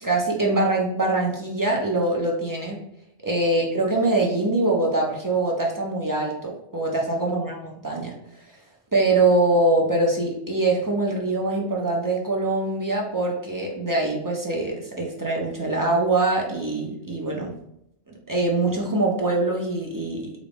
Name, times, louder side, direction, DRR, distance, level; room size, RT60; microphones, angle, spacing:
voice 1, 0.0-2.8 3.2-8.1 8.9-17.5 18.1-20.3, right 2 dB, 30° right, -2 dB, 0.4 m, -23 dB
3.7 x 2.4 x 3.4 m, 0.80 s
omnidirectional pair, 1.1 m